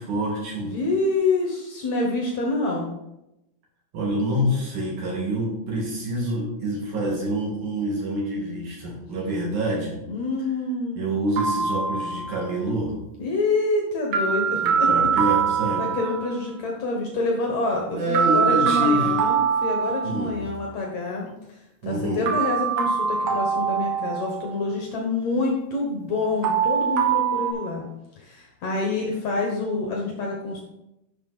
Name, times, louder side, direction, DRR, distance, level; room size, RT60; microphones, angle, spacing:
voice 1, 0.0-0.7 3.9-10.0 11.0-12.9 14.6-15.9 17.9-19.2 20.0-20.5 21.8-22.3, right 1 dB, 50° right, -3 dB, 3.2 m, -27 dB
voice 2, 0.6-2.9 10.1-11.1 13.2-14.9 15.8-21.3 21.8-27.8 28.2-30.6, left 3 dB, 70° left, 0 dB, 1.7 m, -27 dB
sound 1, 11.4-12.5 14.1-16.4 18.1-20.5 22.3-24.6 26.4-27.5, right 7 dB, 65° right, 3.1 m, -23 dB
12.5 x 6.2 x 4.1 m, 0.89 s
omnidirectional pair, 5.2 m